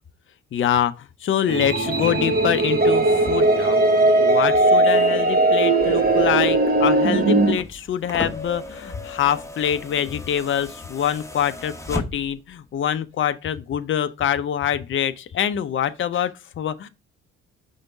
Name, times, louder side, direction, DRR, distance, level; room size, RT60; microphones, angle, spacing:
voice 1, 0.5-16.9, left 9 dB, 35° left, 0.6 m, -25 dB
sound 1, 1.5-7.5, right 2 dB, 25° right, 1.2 m, -18 dB
sound 2, 7.4-12.5 13.7-13.8, left 2 dB, 10° left, 1.1 m, -35 dB
5.1 x 3.6 x 5.5 m
figure-of-eight pair, 45°, 35 cm